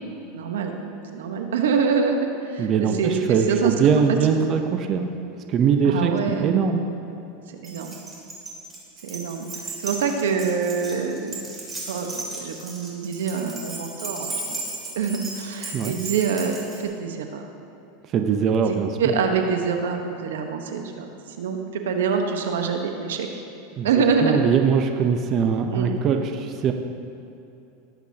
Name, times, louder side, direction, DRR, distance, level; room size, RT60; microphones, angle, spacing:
voice 1, 0.3-0.8 1.1-3.2 3.5-3.7 4.1-4.5 5.8-6.5 7.6-8.0 9.0-11.5 11.9-12.1 12.4-14.6 14.9-17.5 19.0-21.1 21.4-23.3 23.8-24.4 25.7-25.9, right 6 dB, 85° right, 4 dB, 1.1 m, -25 dB
voice 2, 2.6-5.1 5.5-6.9 15.7-15.9 18.1-19.1 23.8-23.9 24.2-26.7, right 6 dB, 40° right, 5 dB, 0.7 m, -22 dB
Keys jangling, 7.6-16.8, right 2 dB, 15° right, 2.7 m, -35 dB
18.5 x 8.2 x 2.9 m, 2.8 s
supercardioid pair, 120°, 0 cm